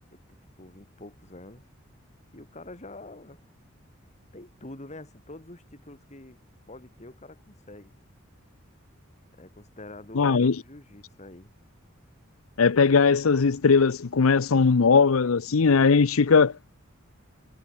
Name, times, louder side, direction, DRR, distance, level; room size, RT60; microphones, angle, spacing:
voice 1, 0.3-1.7 2.3-3.4 4.3-6.4 6.7-8.0 9.4-11.5, left 2 dB, 35° left, 2.9 m, -46 dB
voice 2, 10.1-10.6 12.6-16.7, left 5 dB, 90° left, 0.7 m, -19 dB
head